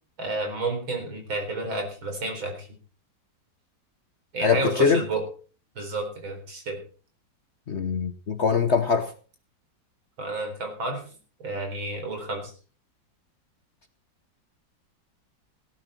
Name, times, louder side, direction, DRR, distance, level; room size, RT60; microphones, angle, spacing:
voice 1, 0.2-2.7 4.3-5.2 5.8-6.8 10.2-11.0 11.4-12.5, right 2 dB, 90° right, 5.0 m, -30 dB
voice 2, 4.4-5.0 7.7-9.1, left 5 dB, 50° left, 0.9 m, -22 dB
17.0 x 12.0 x 4.3 m
omnidirectional pair, 2.1 m